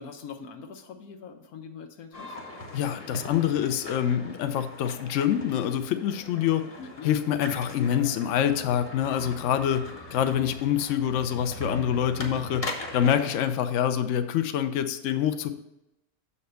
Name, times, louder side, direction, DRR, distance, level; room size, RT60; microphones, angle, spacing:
voice 1, 0.0-2.4 6.8-7.1, left 5 dB, 85° left, 4 dB, 1.3 m, -43 dB
sound 1, 2.1-13.5, left 1 dB, 30° left, 0.9 m, -40 dB
voice 2, 2.7-6.7 7.0-9.8 10.1-12.6 12.9-15.5, left 9 dB, 65° left, 9 dB, 0.8 m, -26 dB
6.9 x 4.2 x 6.6 m, 0.89 s
omnidirectional pair, 1.5 m